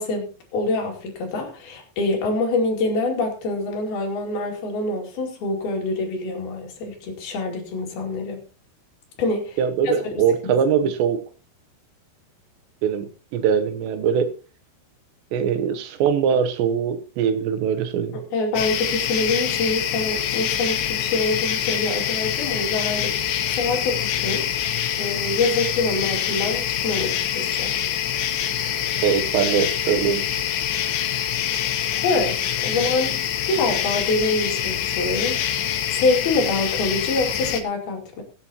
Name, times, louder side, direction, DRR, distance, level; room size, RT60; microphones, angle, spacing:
voice 1, 0.0-8.4 9.2-9.6 9.8-9.9 10.4-10.5 18.1-23.2 23.5-27.8 28.7-28.8 29.1-29.2 31.6-32.4 32.6-33.1 33.5-35.5 35.9-38.2, left 3 dB, 60° left, 1 dB, 4.3 m, -25 dB
voice 2, 9.6-11.2 12.8-14.3 15.3-18.2 29.0-30.2, right 7 dB, 80° right, 9 dB, 3.2 m, -22 dB
sound 1, 18.6-37.6, left 10 dB, 85° left, 3.5 m, -25 dB
22.5 x 8.5 x 3.0 m, 0.35 s
omnidirectional pair, 5.0 m